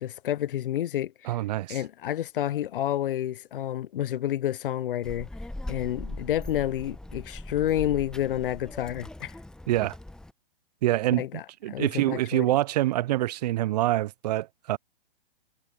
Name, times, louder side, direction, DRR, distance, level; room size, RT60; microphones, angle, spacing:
voice 1, 0.0-1.4 1.7-5.3 5.7-9.4 11.2-11.4 11.7-12.6, left 12 dB, 65° left, 0.8 m, -29 dB
voice 2, 1.2-1.8 9.7-10.0 10.8-11.3 11.6-14.8, right 15 dB, 45° right, 0.4 m, -25 dB
Child speech kid speaking, 5.0-10.3, left 1 dB, ahead, 1.1 m, -40 dB
hypercardioid pair, 125°, 29 cm